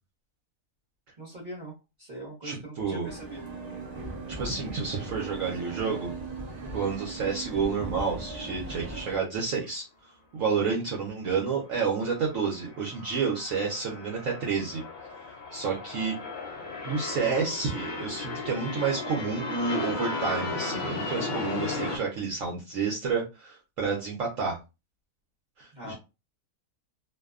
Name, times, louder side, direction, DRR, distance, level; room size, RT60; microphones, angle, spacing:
voice 1, 1.2-1.7 2.0-3.4 10.6-10.7 25.7-25.9, right 1 dB, 35° right, -8 dB, 0.9 m, -41 dB
voice 2, 2.4-3.1 4.3-6.1 6.7-9.8 10.3-14.8 15.5-16.1 16.8-24.6 25.6-25.9, right 5 dB, 65° right, -2 dB, 1.0 m, -30 dB
sound 1, 3.0-9.2, right 3 dB, 85° right, 0.3 m, -38 dB
sound 2, 12.0-22.0, left 3 dB, 90° left, 0.4 m, -35 dB
2.6 x 2.2 x 2.3 m, 0.27 s
omnidirectional pair, 1.6 m